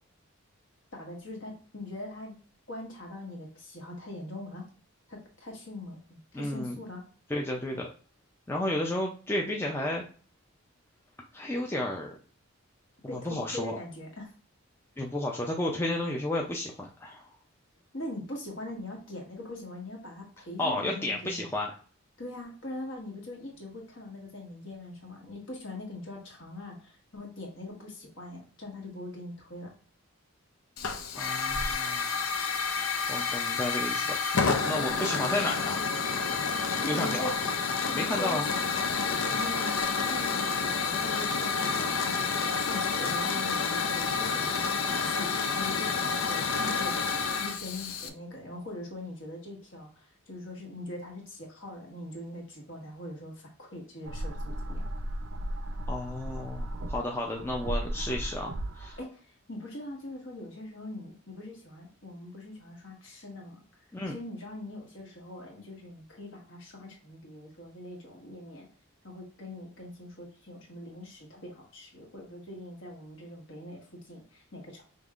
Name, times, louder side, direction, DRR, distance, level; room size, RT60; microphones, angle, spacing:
voice 1, 1.0-2.4 2.7-4.7 5.1-7.0 13.1-14.3 17.9-21.5 22.2-29.7 36.8-37.4 37.8-47.1 47.4-54.8 59.0-63.6 64.0-68.7 69.0-74.8, left 1 dB, 60° left, 0 dB, 1.4 m, -42 dB
voice 2, 6.3-6.8 7.3-7.9 8.5-10.0 11.3-12.1 13.1-13.7 15.0-17.3 20.6-21.7 31.2-32.2 32.7-34.4 34.6-35.9 36.9-37.3 37.9-38.5 55.9-59.0 63.9-64.1, left 1 dB, 10° left, -1 dB, 0.4 m, -32 dB
Hiss / Fire, 30.8-48.1, left 5 dB, 75° left, 0.6 m, -29 dB
sound 1, 54.0-59.0, right 1 dB, 65° right, 0.5 m, -35 dB
5.3 x 3.1 x 2.4 m, 0.40 s
head